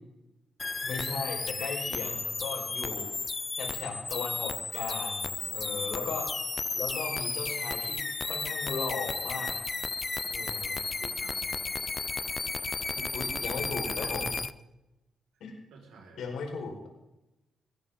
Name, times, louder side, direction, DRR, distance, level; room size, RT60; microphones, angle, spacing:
sound 1, 0.6-14.5, left 4 dB, 30° left, 0.6 m, -33 dB
voice 1, 0.8-3.1 3.6-6.3 6.7-9.6 10.3-10.8 13.1-14.3 15.4-15.5 16.2-16.9, left 4 dB, 80° left, 2 dB, 4.8 m, -37 dB
voice 2, 5.4-6.0 10.2-11.6 12.9-13.2 13.8-14.2 15.7-16.4, right 4 dB, 90° right, 1 dB, 5.1 m, -51 dB
20.5 x 17.5 x 3.8 m, 0.95 s
cardioid pair, 85°, 0 cm